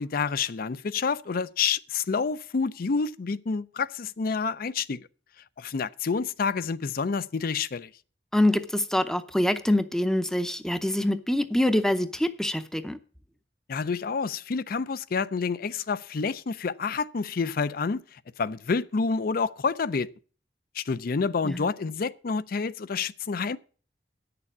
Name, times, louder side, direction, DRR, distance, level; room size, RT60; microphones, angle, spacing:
voice 1, 0.0-5.1 5.6-7.9 13.7-20.1 20.7-23.6, left 5 dB, 55° left, 0.5 m, -28 dB
voice 2, 8.3-13.0 21.4-21.7, left 1 dB, 5° left, 0.6 m, -25 dB
9.7 x 6.8 x 7.2 m
head